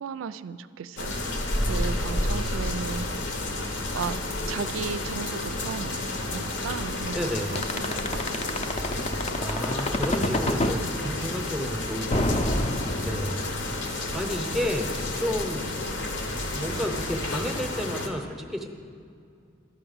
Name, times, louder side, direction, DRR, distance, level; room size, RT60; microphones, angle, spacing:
voice 1, 0.0-1.4 1.6-3.3 3.9-4.2 4.5-7.2 7.5-8.4, right 6 dB, 80° right, 14 dB, 0.4 m, -35 dB
sound 1, 1.0-18.1, left 2 dB, 65° left, 1.0 m, -31 dB
sound 2, 1.2-17.5, equal, 85° left, 1.4 m, -41 dB
voice 2, 1.5-2.6 7.1-7.6 9.4-12.5 13.0-15.7 16.5-18.7, equal, ahead, 4 dB, 0.7 m, -32 dB
sound 3, 7.6-10.8 12.1-13.5, left 1 dB, 35° left, 0.6 m, -26 dB
11.5 x 5.9 x 7.1 m, 2.4 s
head